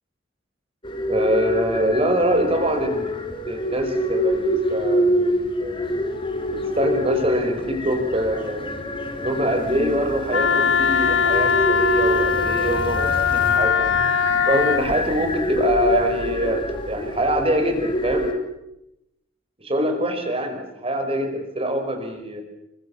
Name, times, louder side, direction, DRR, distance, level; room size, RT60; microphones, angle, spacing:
sound 1, 0.8-18.3, equal, 25° left, 4.0 m, -26 dB
voice 1, 1.1-3.2 3.5-5.9 6.5-8.7 9.2-13.9 14.5-18.3 19.6-22.4, right 1 dB, 30° right, 6 dB, 5.2 m, -24 dB
Wind instrument woodwind instrument, 10.3-14.9, left 6 dB, 85° left, 1.5 m, -20 dB
29.5 x 24.5 x 7.2 m, 0.88 s
head